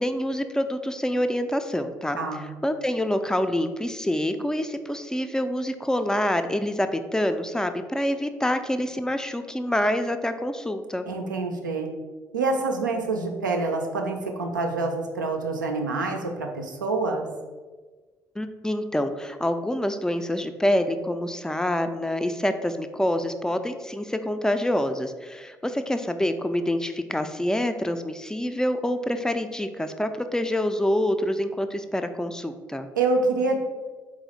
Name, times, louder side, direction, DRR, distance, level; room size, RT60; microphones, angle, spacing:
voice 1, 0.0-2.2 2.6-11.1 18.4-32.9, left 1 dB, 5° left, 9 dB, 0.3 m, -26 dB
voice 2, 2.2-2.5 11.0-11.9 12.3-17.3 33.0-33.6, right 3 dB, 85° right, 2 dB, 0.4 m, -26 dB
4.1 x 2.4 x 4.0 m, 1.3 s
figure-of-eight pair, 45°, 10 cm